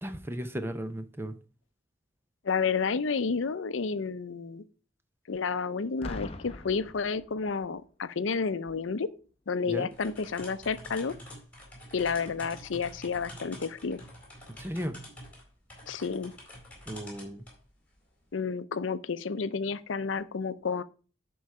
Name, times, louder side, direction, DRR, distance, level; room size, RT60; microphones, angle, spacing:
voice 1, 0.0-1.3 9.7-9.9 14.6-15.0 16.9-17.5, equal, 10° right, 0.6 m, -35 dB
voice 2, 2.4-4.6 5.3-9.1 9.5-11.1 11.9-14.0 15.9-16.3 18.3-20.8, left 5 dB, 80° left, 0.6 m, -31 dB
Boom, 6.0-7.8 8.7-8.9, left 1 dB, 30° left, 0.8 m, -42 dB
sound 1, 9.9-17.6, left 1 dB, 5° left, 4.0 m, -47 dB
10.5 x 4.7 x 4.8 m
head